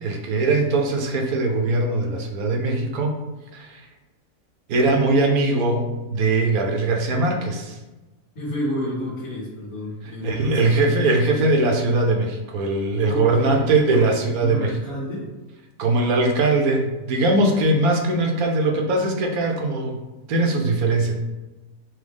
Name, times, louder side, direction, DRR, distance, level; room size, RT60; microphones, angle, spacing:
voice 1, 0.0-3.1 3.5-3.8 4.7-7.8 10.2-14.7 15.8-20.0 20.3-21.1, right 2 dB, 70° right, 2 dB, 1.1 m, -21 dB
voice 2, 8.3-10.9 13.0-15.3, equal, 65° left, -10 dB, 1.5 m, -31 dB
6.1 x 2.1 x 3.4 m, 1.1 s
omnidirectional pair, 1.7 m